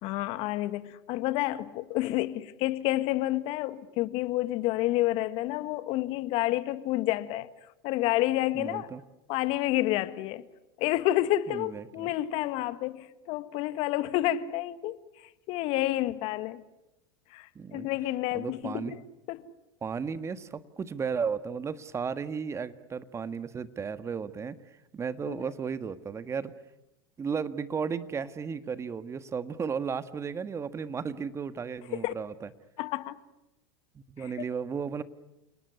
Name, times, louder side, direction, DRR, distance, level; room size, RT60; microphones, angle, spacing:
voice 1, 0.0-7.5 7.8-8.9 9.3-10.4 10.8-15.0 15.5-16.6 17.3-19.0 19.3-19.5 25.3-25.4 32.0-32.1 32.8-33.2 34.2-34.3, left 15 dB, 55° left, 1.7 m, -29 dB
voice 2, 8.5-9.0 11.5-12.1 17.5-17.9 18.3-18.9 19.8-24.6 24.9-26.5 27.2-32.5 34.1-35.0, right 6 dB, 25° right, 1.6 m, -34 dB
29.5 x 19.0 x 9.8 m
hypercardioid pair, 95°, 12 cm